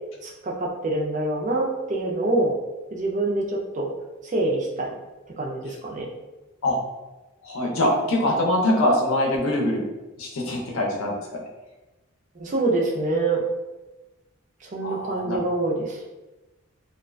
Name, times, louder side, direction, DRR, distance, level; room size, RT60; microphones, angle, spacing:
voice 1, 0.2-2.6 2.9-3.9 4.2-4.9 5.4-6.1 12.4-13.4 14.6-16.0, right 2 dB, 35° right, -1 dB, 0.4 m, -25 dB
voice 2, 7.4-9.8 10.2-11.1 14.8-15.4, left 1 dB, 70° left, -2 dB, 0.6 m, -23 dB
2.4 x 2.3 x 2.2 m, 1.1 s
head